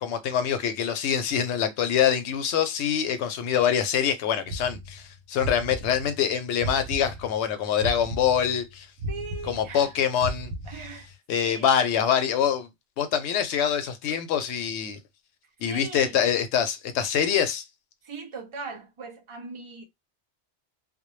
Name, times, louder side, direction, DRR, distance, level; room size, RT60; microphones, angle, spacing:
voice 1, 0.0-8.9 9.5-10.5 11.3-12.7 13.0-15.0 15.6-17.6, left 8 dB, 70° left, 0.8 m, -25 dB
sound 1, 4.5-7.4 7.8-11.1, equal, 90° right, 0.9 m, -35 dB
voice 2, 9.1-10.0 10.7-11.1 11.4-11.7 15.6-16.2 18.0-19.8, right 4 dB, 55° right, 0.3 m, -39 dB
2.1 x 2.1 x 3.0 m
omnidirectional pair, 1.2 m